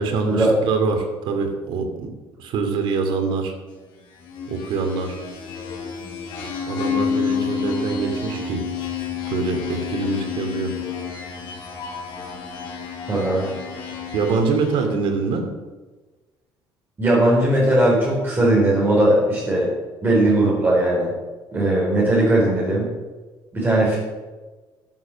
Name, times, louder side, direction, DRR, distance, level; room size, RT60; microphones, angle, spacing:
voice 1, 0.0-2.1 2.4-3.6 4.5-5.1 6.7-8.6 9.3-10.7 14.1-15.5, right 4 dB, 70° right, 4 dB, 2.6 m, -24 dB
sound 1, 4.1-15.0, left 6 dB, 70° left, 4.0 m, -30 dB
voice 2, 13.1-13.5 17.0-19.7 20.0-21.1 21.5-22.9 23.5-24.0, right 1 dB, 25° right, -5 dB, 4.3 m, -18 dB
13.0 x 7.3 x 6.5 m, 1.2 s
cardioid pair, 130°, 9 cm